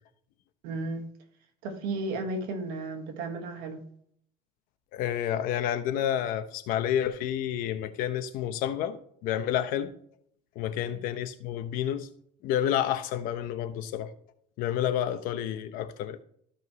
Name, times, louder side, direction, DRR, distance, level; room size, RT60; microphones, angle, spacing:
voice 1, 0.6-1.0 1.6-3.8 10.8-11.0, right 2 dB, 85° right, 1.9 m, -34 dB
voice 2, 4.9-9.9 10.5-12.1 12.4-14.1 14.6-16.2, left 10 dB, 70° left, 1.1 m, -29 dB
14.0 x 5.3 x 3.2 m
cardioid pair, 145°, 15 cm